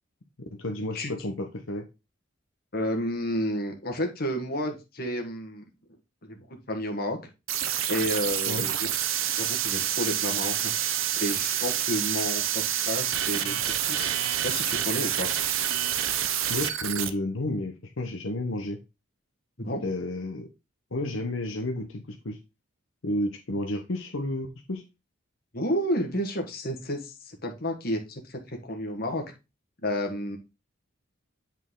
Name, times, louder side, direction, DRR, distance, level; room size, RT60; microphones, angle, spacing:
voice 1, 0.6-1.9 8.5-8.6 16.5-18.8 19.8-20.5 20.9-22.4 23.0-24.8, left 1 dB, 75° left, 3 dB, 1.0 m, -31 dB
voice 2, 2.7-5.6 6.2-7.3 7.9-8.9 9.2-10.7 11.2-15.3 19.6-19.8 25.5-29.2 29.8-30.4, equal, 50° left, 3 dB, 1.7 m, -31 dB
sound 1, 7.5-17.1, right 10 dB, 85° right, 0.7 m, -28 dB
8.3 x 4.5 x 3.8 m, 0.27 s
head